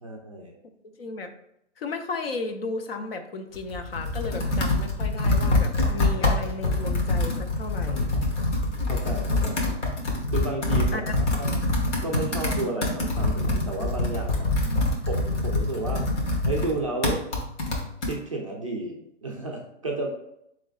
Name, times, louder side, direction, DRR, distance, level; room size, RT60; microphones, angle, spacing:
voice 1, 0.0-0.5 8.6-9.8 10.3-11.6 12.0-14.5 15.1-16.1 16.5-17.2 18.1-20.1, right 2 dB, 30° right, -2 dB, 0.4 m, -32 dB
voice 2, 0.8-1.3 1.8-8.1 10.9-11.1 14.7-14.9, left 3 dB, 55° left, 6 dB, 0.6 m, -34 dB
Computer keyboard, 3.5-18.2, left 2 dB, 70° left, 1.4 m, -25 dB
3.8 x 3.2 x 3.7 m, 0.77 s
hypercardioid pair, 170°, 36 cm